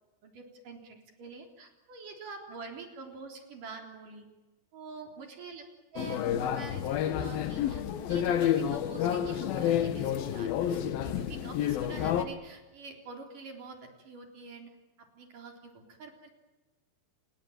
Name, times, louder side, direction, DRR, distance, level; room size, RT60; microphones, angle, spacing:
voice 1, 0.2-4.3 4.7-5.6 5.9-7.8 8.1-14.7 15.0-16.3, right 4 dB, 45° right, 3 dB, 4.9 m, -46 dB
sound 1, 6.0-12.3, left 10 dB, 65° left, 2.5 m, -29 dB
29.0 x 20.0 x 9.2 m, 1.1 s
omnidirectional pair, 5.8 m